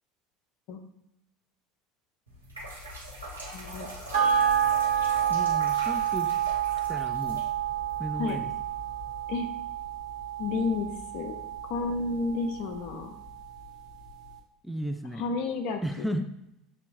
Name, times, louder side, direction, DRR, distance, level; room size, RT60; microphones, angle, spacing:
sound 1, 2.3-9.2, equal, 85° right, 0.8 m, -43 dB
voice 1, 3.5-3.9 8.2-8.4 9.3-9.5 10.4-11.4 11.6-13.1 15.1-16.0, left 4 dB, 55° left, 5 dB, 0.6 m, -31 dB
sound 2, 4.1-12.9 13.2-13.3, right 9 dB, 65° right, 1.1 m, -29 dB
voice 2, 5.3-6.4 6.9-7.4 8.0-8.5 14.6-15.3 15.8-16.3, equal, ahead, 5 dB, 0.4 m, -34 dB
6.7 x 2.8 x 2.5 m, 0.84 s
figure-of-eight pair, 70°, 0 cm